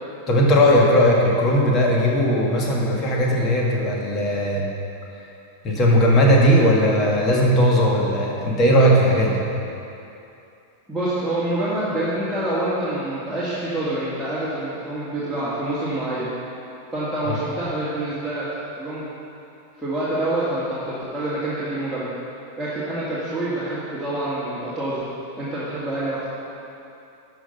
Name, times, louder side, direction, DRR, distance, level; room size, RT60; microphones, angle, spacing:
voice 1, 0.3-4.7 5.6-9.4 17.3-17.4, equal, 30° left, -2 dB, 1.9 m, -18 dB
voice 2, 10.9-16.3 16.9-18.5 18.8-19.1 19.8-22.1 22.6-25.0 25.4-26.2, right 1 dB, ahead, -13 dB, 2.3 m, -26 dB
12.0 x 6.0 x 5.5 m, 2.7 s
figure-of-eight pair, 90°, 0 cm